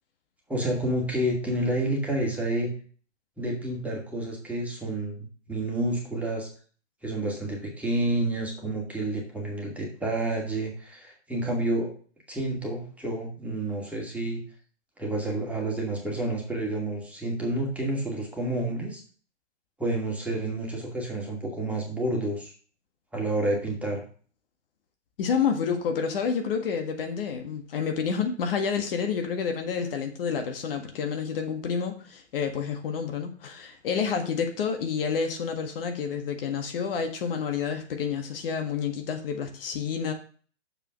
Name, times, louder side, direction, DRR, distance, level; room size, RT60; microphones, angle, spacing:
voice 1, 0.5-2.7 3.4-6.5 7.0-11.9 12.3-14.4 15.0-19.0 19.8-22.5 23.1-24.0, right 1 dB, 5° right, -1 dB, 2.3 m, -29 dB
voice 2, 25.2-40.1, left 6 dB, 50° left, 5 dB, 1.7 m, -29 dB
7.1 x 5.5 x 6.2 m, 0.42 s
hypercardioid pair, 125°, 35 cm